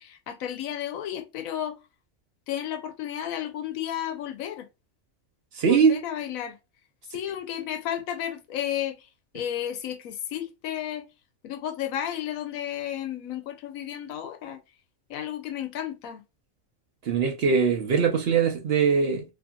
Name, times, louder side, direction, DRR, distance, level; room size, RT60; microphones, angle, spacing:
voice 1, 0.0-1.8 2.5-4.7 5.7-6.6 7.1-9.1 9.3-11.0 11.4-14.6 15.1-16.2, left 10 dB, 90° left, 1.0 m, -32 dB
voice 2, 5.6-6.0 17.1-19.2, right 6 dB, 60° right, 0.7 m, -21 dB
2.8 x 2.6 x 2.2 m
omnidirectional pair, 1.4 m